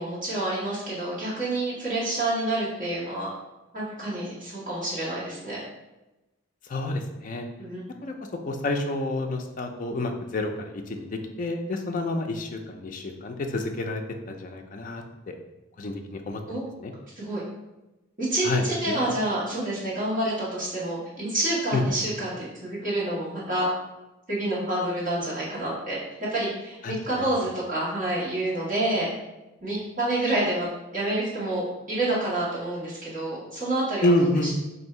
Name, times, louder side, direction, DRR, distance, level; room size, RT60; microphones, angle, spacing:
voice 1, 0.0-3.3 3.7-5.6 7.6-7.8 16.5-16.6 17.2-17.4 18.2-23.7 24.3-26.0 26.3-29.1 29.6-34.5, right 1 dB, 40° right, -8 dB, 1.3 m, -28 dB
voice 2, 6.7-7.5 8.0-8.1 8.4-14.0 14.3-15.3 15.8-16.4 16.8-16.9 18.4-19.2 21.7-21.8 26.8-27.0 34.0-34.5, left 2 dB, 40° left, 3 dB, 0.3 m, -28 dB
2.7 x 2.6 x 4.3 m, 1.0 s
head